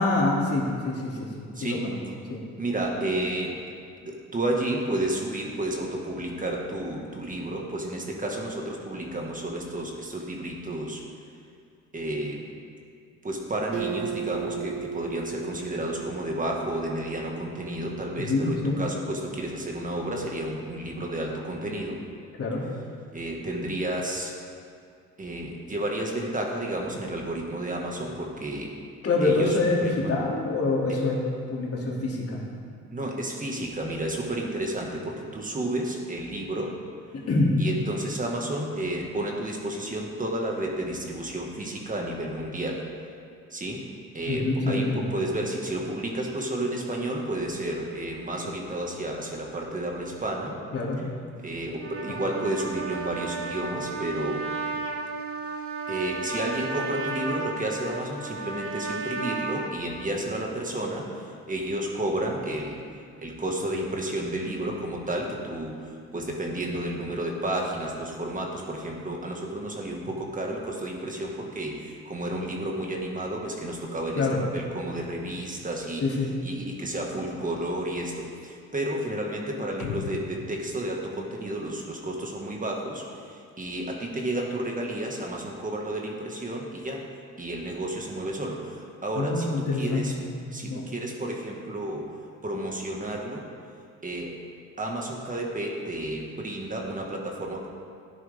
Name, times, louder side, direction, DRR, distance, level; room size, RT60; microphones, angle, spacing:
voice 1, 0.0-2.0 2.3-2.4 18.2-18.8 22.4-22.6 29.0-31.2 31.5-32.5 37.1-37.5 44.3-45.0 50.7-51.0 74.2-74.4 76.0-76.3 89.2-90.8, left 2 dB, 50° left, -4 dB, 2.8 m, -26 dB
voice 2, 1.6-1.9 2.6-3.6 4.1-11.0 11.9-12.5 13.2-22.0 23.1-24.4 25.2-28.8 29.2-30.1 30.9-31.0 32.9-36.8 37.6-42.8 43.5-43.8 44.1-50.6 51.4-54.5 55.9-62.8 63.2-76.1 76.4-87.0 87.4-90.1 90.5-92.1 92.4-93.4 94.0-94.4 94.8-97.7, right 1 dB, 25° right, 0 dB, 1.8 m, -31 dB
Acoustic guitar, 13.7-17.2, right 7 dB, 90° right, 0.7 m, -35 dB
Trumpet, 51.7-59.7, right 3 dB, 50° right, 1.2 m, -33 dB
sound 1, 79.8-82.3, left 11 dB, 75° left, 0.6 m, -39 dB
13.5 x 10.5 x 3.6 m, 2.3 s
cardioid pair, 90°, 30 cm